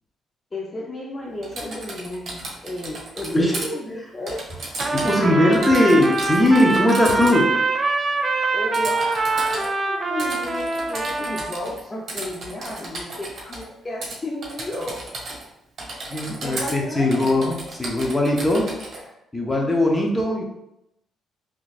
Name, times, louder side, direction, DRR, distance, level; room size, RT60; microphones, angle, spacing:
voice 1, 0.5-4.5 5.0-5.7 7.1-7.6 8.5-15.0 16.3-17.4, left 1 dB, 30° left, -3 dB, 0.6 m, -33 dB
Typing, 1.4-3.7 4.3-5.2 5.5-7.4 8.7-9.7 10.2-11.8 12.1-13.6 14.0-14.2 14.4-15.5 15.8-16.8 17.1-19.0, right 2 dB, 55° right, 1.3 m, -34 dB
Trumpet, 4.8-11.5, right 3 dB, 35° right, 0.4 m, -24 dB
voice 2, 4.9-7.4 16.1-18.7 19.3-20.4, left 1 dB, 10° left, -1 dB, 0.9 m, -19 dB
3.9 x 3.1 x 2.5 m, 0.84 s
cardioid pair, 90°, 0 cm